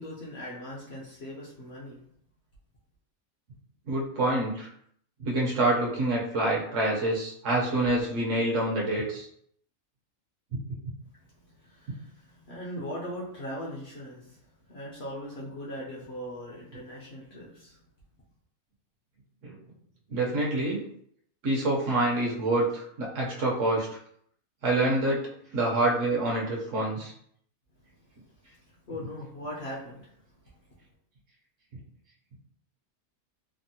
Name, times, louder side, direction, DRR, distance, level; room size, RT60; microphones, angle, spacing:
voice 1, 0.0-2.0 11.3-14.4 14.7-17.8 28.5-28.6 28.9-30.1, equal, 55° left, -5 dB, 0.8 m, -40 dB
voice 2, 3.9-4.7 5.2-9.3 10.5-10.6 19.4-19.6 20.1-20.8 21.4-24.0 24.6-25.2 25.5-27.1, right 2 dB, 65° right, -3 dB, 1.0 m, -26 dB
3.4 x 2.0 x 2.7 m, 0.66 s
omnidirectional pair, 1.5 m